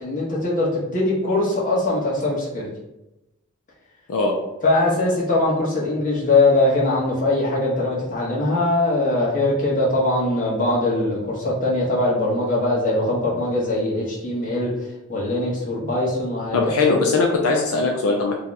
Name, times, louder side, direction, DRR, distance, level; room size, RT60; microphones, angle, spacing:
voice 1, 0.0-2.7 4.6-14.7 15.1-16.6 16.8-16.9, left 2 dB, 40° left, -5 dB, 1.0 m, -21 dB
voice 2, 16.5-18.4, left 3 dB, 80° left, 0 dB, 0.5 m, -20 dB
2.7 x 2.3 x 4.0 m, 0.94 s
head